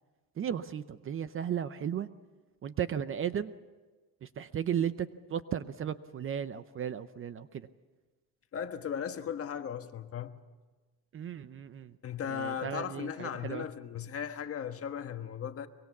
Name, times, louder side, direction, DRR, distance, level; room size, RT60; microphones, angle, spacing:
voice 1, 0.4-2.1 2.6-3.5 4.2-7.7 11.1-11.9 12.3-13.6, right 9 dB, 35° right, 0.7 m, -35 dB
voice 2, 8.5-10.3 12.0-15.7, left 8 dB, 35° left, 1.4 m, -37 dB
24.0 x 23.0 x 7.2 m
cardioid pair, 135°, 38 cm